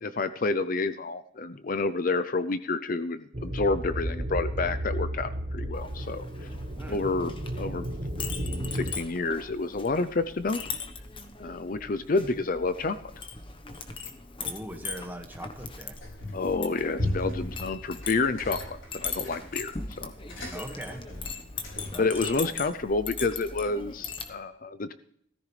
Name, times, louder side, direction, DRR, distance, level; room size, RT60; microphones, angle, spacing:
voice 1, 0.0-6.5 6.9-7.9 8.4-10.6 11.4-13.0 16.3-20.1 22.0-24.9, left 3 dB, 40° left, 12 dB, 0.5 m, -29 dB
sound 1, 3.3-8.9, right 1 dB, 40° right, 1.1 m, -33 dB
Chink clink, 5.7-24.3, left 5 dB, 25° left, 1.1 m, -40 dB
voice 2, 6.7-7.1 12.1-12.4 14.4-16.0 20.5-21.0 21.9-22.1 22.4-22.5, right 1 dB, 10° right, 3 dB, 1.7 m, -41 dB
sound 2, 16.0-16.5 16.9-22.1, left 1 dB, 75° left, 5.5 m, -36 dB
16.5 x 14.0 x 3.3 m, 0.67 s
head